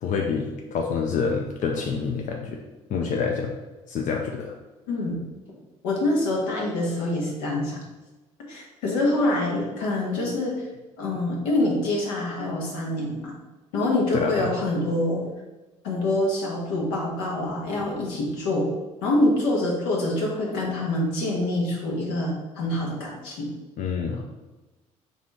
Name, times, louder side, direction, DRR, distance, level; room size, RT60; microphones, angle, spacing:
voice 1, 0.0-2.6 2.9-3.5 3.9-4.5 14.1-14.5 23.8-24.2, left 5 dB, 50° left, 1 dB, 0.5 m, -27 dB
voice 2, 4.9-5.2 5.8-7.8 8.5-10.7 11.0-13.3 13.7-15.2 15.8-18.7 19.0-23.5, left 1 dB, 80° left, -2 dB, 1.1 m, -25 dB
4.0 x 2.5 x 4.0 m, 1.1 s
hypercardioid pair, 55°, 16 cm